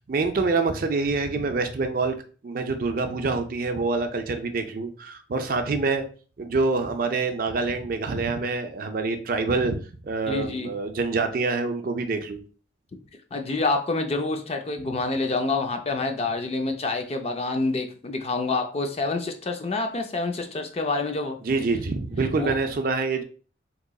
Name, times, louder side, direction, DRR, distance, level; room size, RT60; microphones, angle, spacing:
voice 1, 0.1-2.2 2.4-6.1 6.4-12.4 21.4-23.2, right 3 dB, 50° right, 6 dB, 0.4 m, -26 dB
voice 2, 10.3-10.7 13.3-21.4 22.4-22.6, left 3 dB, 35° left, 5 dB, 0.4 m, -27 dB
3.8 x 2.9 x 2.3 m, 0.38 s
head